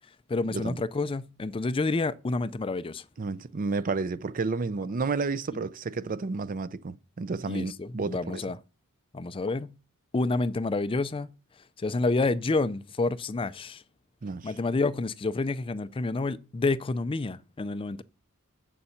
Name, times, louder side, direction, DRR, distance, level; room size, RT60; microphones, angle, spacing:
voice 1, 0.3-3.0 7.5-8.6 9.1-9.7 10.1-11.3 11.8-13.8 14.4-18.0, left 3 dB, 25° left, 0.4 m, -29 dB
voice 2, 3.2-8.4 14.2-14.5, right 4 dB, 40° right, 0.4 m, -31 dB
7.7 x 7.0 x 7.0 m
head